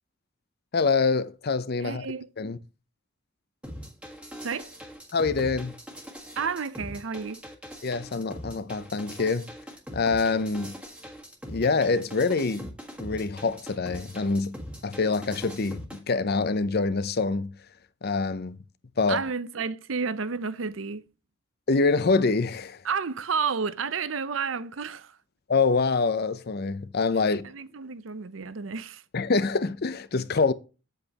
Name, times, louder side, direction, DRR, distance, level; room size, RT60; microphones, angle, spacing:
voice 1, 0.7-2.1 2.4-2.6 5.1-5.7 7.8-9.5 9.9-10.8 11.5-12.7 13.0-17.5 18.0-18.6 19.0-19.2 21.7-22.8 25.5-27.5 29.1-30.5, left 4 dB, 55° left, 0.6 m, -25 dB
voice 2, 1.8-2.3 4.4-4.7 6.4-7.4 19.1-21.0 22.8-25.2 27.4-29.0, right 5 dB, 80° right, 0.7 m, -31 dB
sound 1, 3.6-16.0, equal, 5° right, 1.6 m, -42 dB
8.4 x 8.1 x 2.9 m
head